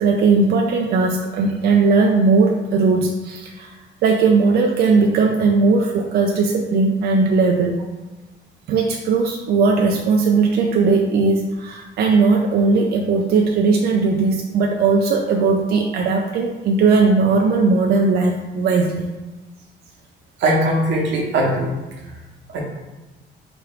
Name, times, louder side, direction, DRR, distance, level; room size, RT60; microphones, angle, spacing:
voice 1, 0.0-3.8 4.0-7.8 8.7-19.1, right 4 dB, 60° right, 2 dB, 0.4 m, -18 dB
voice 2, 20.4-21.7 22.5-22.6, right 1 dB, 90° right, -1 dB, 1.1 m, -19 dB
4.8 x 3.1 x 3.1 m, 1.2 s
cardioid pair, 155°, 18 cm